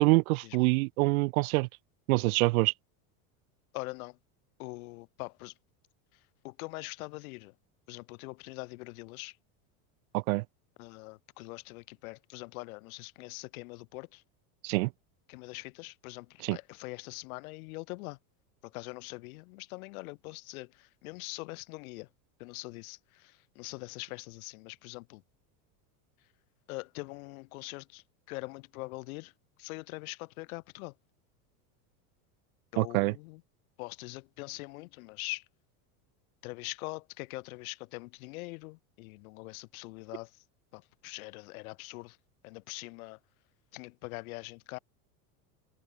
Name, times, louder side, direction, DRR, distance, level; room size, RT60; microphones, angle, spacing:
voice 1, 0.0-1.7 2.1-2.7 10.1-10.4 14.6-14.9 16.4-16.6 32.8-33.1, right 24 dB, 75° right, 1.1 m, -25 dB
voice 2, 3.7-4.2 4.6-5.5 6.4-7.5 7.9-9.4 10.8-14.2 15.3-18.2 18.6-22.1 22.4-25.2 26.7-29.3 29.6-31.0 32.7-33.4 33.8-35.5 36.4-40.4 40.7-42.2 42.4-43.2 43.7-44.8, left 23 dB, 70° left, 7.0 m, -43 dB
supercardioid pair, 155°, 43 cm